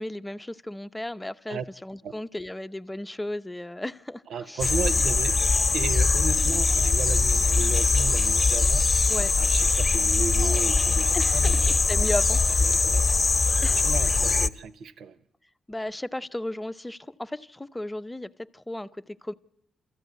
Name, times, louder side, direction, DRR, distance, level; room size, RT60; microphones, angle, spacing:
voice 1, 0.0-4.7 9.1-9.3 11.1-12.8 13.6-14.1 15.7-19.3, left 1 dB, 10° left, 0.8 m, -35 dB
voice 2, 4.3-5.4 5.7-8.9 9.4-11.7 12.0-12.1 12.6-13.1 13.7-15.2, right 6 dB, 80° right, 0.8 m, -34 dB
sound 1, 4.6-14.5, left 4 dB, 40° left, 0.8 m, -22 dB
29.0 x 14.0 x 9.4 m
cardioid pair, 65°, 0 cm